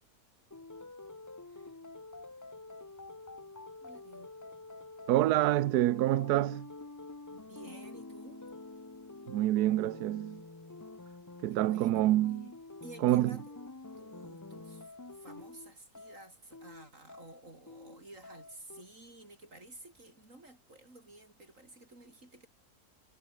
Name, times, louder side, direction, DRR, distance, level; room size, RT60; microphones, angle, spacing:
sound 1, 0.5-18.8, left 2 dB, 15° left, 0.6 m, -48 dB
voice 1, 1.5-1.8 3.8-4.3 7.3-8.4 11.5-12.5 12.8-13.7 14.0-22.5, right 2 dB, 50° right, 6.6 m, -53 dB
voice 2, 5.1-6.7 9.3-10.4 11.4-12.5 13.0-13.4, right 14 dB, 75° right, 1.2 m, -27 dB
omnidirectional pair, 1.7 m